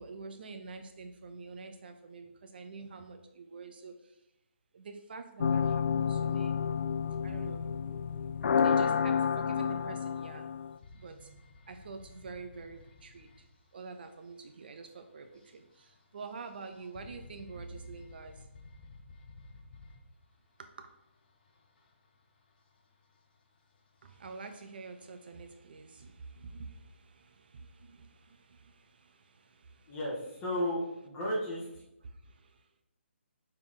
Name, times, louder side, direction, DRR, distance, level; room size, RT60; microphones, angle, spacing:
voice 1, 0.0-4.2 4.7-6.6 7.2-7.6 8.6-10.5 10.9-13.5 13.7-18.5 20.6-20.9 24.0-30.0 32.0-32.7, right 4 dB, 50° right, 7 dB, 0.6 m, -47 dB
sound 1, 5.4-10.8, left 7 dB, 60° left, 0.3 m, -30 dB
sound 2, 10.7-25.2, left 3 dB, 45° left, 1.1 m, -56 dB
voice 2, 29.9-31.6, equal, 15° left, -5 dB, 1.8 m, -33 dB
5.9 x 4.5 x 3.8 m, 0.88 s
hypercardioid pair, 160°, 7 cm